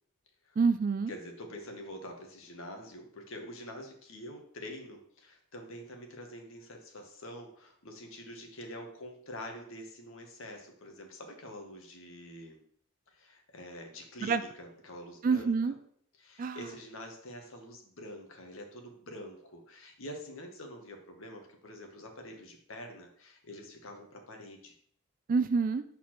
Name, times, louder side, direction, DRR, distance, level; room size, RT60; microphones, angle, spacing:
voice 1, 0.6-1.1 14.2-14.4 15.2-15.7 16.4-16.7 25.3-25.8, right 4 dB, 40° right, 11 dB, 0.3 m, -27 dB
voice 2, 1.1-12.6 13.1-15.5 16.2-24.7, left 1 dB, 60° left, 3 dB, 1.2 m, -46 dB
6.1 x 4.1 x 4.3 m, 0.62 s
head